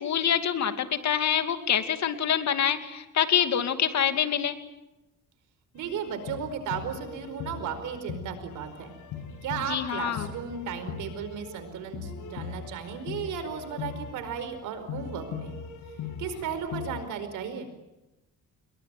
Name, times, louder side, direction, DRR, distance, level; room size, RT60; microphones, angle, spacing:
voice 1, 0.0-4.6 9.7-10.3, left 9 dB, 65° left, 8 dB, 2.7 m, -26 dB
voice 2, 5.7-8.9 9.4-15.5 16.2-17.7, right 7 dB, 90° right, 10 dB, 4.9 m, -35 dB
sound 1, 5.8-17.0, left 7 dB, 85° left, 5.8 m, -40 dB
28.5 x 22.0 x 9.2 m, 0.99 s
cardioid pair, 90°, 30 cm